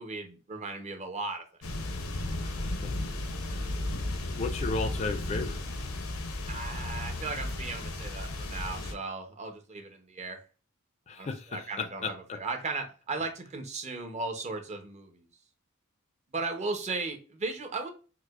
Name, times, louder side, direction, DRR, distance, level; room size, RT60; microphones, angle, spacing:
voice 1, 0.0-1.4 6.5-10.4 11.1-15.3 16.3-17.9, right 3 dB, 35° right, 4 dB, 0.6 m, -36 dB
sound 1, 1.6-8.9, left 2 dB, 80° left, 0.6 m, -34 dB
voice 2, 2.4-2.9 3.4-3.8 4.4-5.6 11.1-12.4, left 3 dB, 30° left, 7 dB, 0.4 m, -35 dB
4.7 x 2.0 x 2.3 m, 0.36 s
head